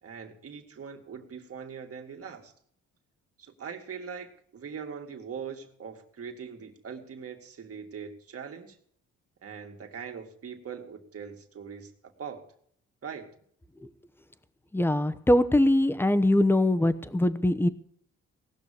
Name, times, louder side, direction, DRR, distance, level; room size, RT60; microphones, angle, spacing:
voice 1, 0.0-2.5 3.4-8.8 9.4-12.5 13.0-13.3, right 6 dB, 50° right, 4 dB, 2.4 m, -41 dB
voice 2, 14.7-17.7, left 1 dB, 5° left, 12 dB, 0.9 m, -22 dB
18.5 x 6.3 x 8.6 m, 0.62 s
cardioid pair, 90°, 30 cm